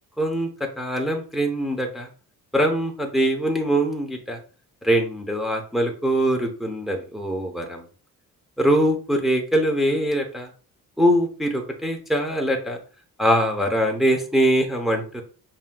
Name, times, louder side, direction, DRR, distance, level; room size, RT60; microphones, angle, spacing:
voice 1, 0.2-0.5 0.8-2.1 2.5-4.4 4.8-7.8 8.6-10.5 11.0-12.8 13.2-15.2, equal, ahead, 2 dB, 0.9 m, -22 dB
5.5 x 2.9 x 2.3 m, 0.38 s
cardioid pair, 85°, 34 cm